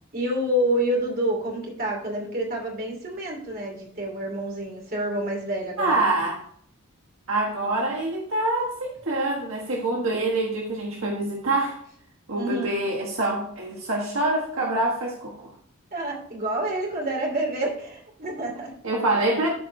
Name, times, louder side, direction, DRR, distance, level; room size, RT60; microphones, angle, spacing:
voice 1, 0.1-6.0 12.3-12.7 15.9-18.7, right 1 dB, 40° right, 0 dB, 2.6 m, -28 dB
voice 2, 5.8-6.4 7.3-11.8 12.3-15.5 18.8-19.5, right 2 dB, 70° right, -2 dB, 1.4 m, -25 dB
13.0 x 4.5 x 3.2 m, 0.66 s
head